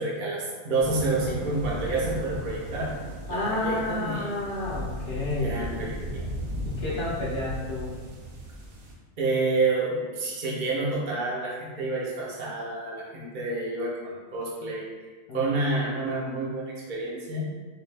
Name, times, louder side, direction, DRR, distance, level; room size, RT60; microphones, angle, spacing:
voice 1, 0.0-2.9 3.3-4.3 5.4-6.3 9.2-14.9 15.3-17.5, right 2 dB, 45° right, -6 dB, 0.7 m, -29 dB
sound 1, 0.8-8.9, equal, 75° right, 1.2 m, -36 dB
voice 2, 3.3-5.7 6.6-7.9 15.3-15.5, left 2 dB, 50° left, -8 dB, 0.8 m, -30 dB
4.6 x 2.4 x 3.3 m, 1.5 s
omnidirectional pair, 1.5 m